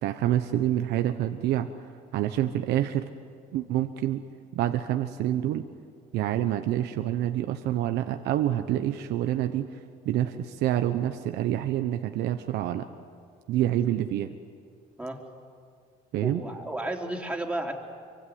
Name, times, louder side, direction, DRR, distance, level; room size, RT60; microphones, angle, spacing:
voice 1, 0.0-1.7 2.1-3.0 3.5-4.2 4.5-5.7 6.1-9.7 10.0-12.9 13.5-14.3 16.1-16.4, right 12 dB, 80° right, 7 dB, 1.1 m, -27 dB
voice 2, 16.2-17.7, right 1 dB, 5° right, 0 dB, 3.8 m, -33 dB
25.5 x 25.0 x 9.5 m, 2.2 s
cardioid pair, 110°, 17 cm